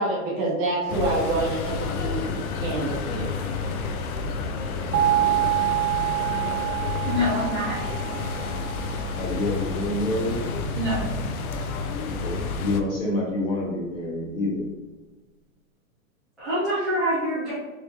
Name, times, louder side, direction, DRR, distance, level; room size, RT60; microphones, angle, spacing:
voice 1, 0.0-2.2 2.6-3.4, right 2 dB, 25° right, -5 dB, 1.0 m, -27 dB
sound 1, 0.9-12.8, left 4 dB, 85° left, 0.7 m, -30 dB
sound 2, 4.9-9.7, right 16 dB, 80° right, 0.7 m, -27 dB
voice 2, 7.0-7.8 10.7-11.1 16.4-17.5, equal, ahead, -19 dB, 0.4 m, -25 dB
voice 3, 9.2-10.4 12.1-14.7, left 1 dB, 45° left, -3 dB, 1.5 m, -27 dB
4.5 x 3.5 x 2.8 m, 1.2 s
supercardioid pair, 165°, 42 cm